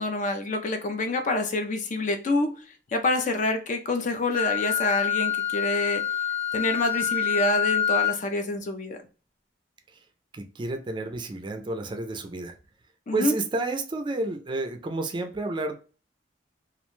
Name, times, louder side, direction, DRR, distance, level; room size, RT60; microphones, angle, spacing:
voice 1, 0.0-2.6 2.9-6.0 6.5-9.0 13.1-13.3, left 2 dB, 45° left, 0.4 m, -27 dB
Wind instrument woodwind instrument, 4.3-8.2, left 9 dB, 25° left, 0.9 m, -26 dB
voice 2, 10.3-12.6 13.1-15.7, right 2 dB, 25° right, 0.4 m, -30 dB
2.4 x 2.2 x 3.0 m
head